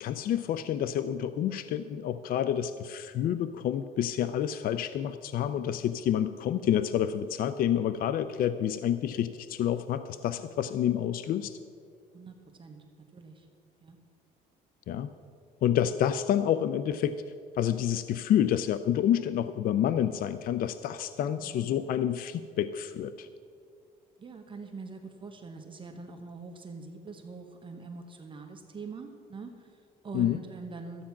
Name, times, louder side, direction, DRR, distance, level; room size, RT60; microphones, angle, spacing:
voice 1, 0.0-11.5 14.9-15.1 15.6-17.2 17.6-23.3 30.1-30.4, left 10 dB, 60° left, 12 dB, 0.5 m, -28 dB
voice 2, 12.1-12.8 13.1-13.5 13.8-14.0 21.3-21.9 24.2-31.1, right 4 dB, 30° right, 4 dB, 1.1 m, -44 dB
13.0 x 8.6 x 5.8 m, 2.2 s
cardioid pair, 110°, 17 cm